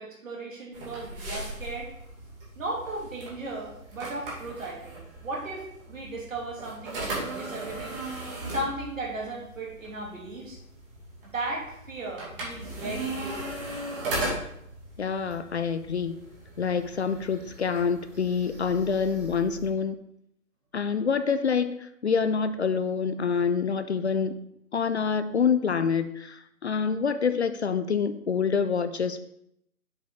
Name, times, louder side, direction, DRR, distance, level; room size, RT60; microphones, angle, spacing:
voice 1, 0.0-1.9 2.6-8.0 8.5-10.6 11.3-13.7, right 2 dB, 65° right, -3 dB, 2.8 m, -36 dB
sound 1, 0.7-19.7, right 2 dB, 40° right, 2.5 m, -38 dB
voice 2, 15.0-16.2 16.6-20.0 20.7-24.4 24.7-29.2, left 6 dB, 50° left, 11 dB, 0.5 m, -26 dB
7.2 x 5.1 x 3.9 m, 0.75 s
figure-of-eight pair, 145°, 43 cm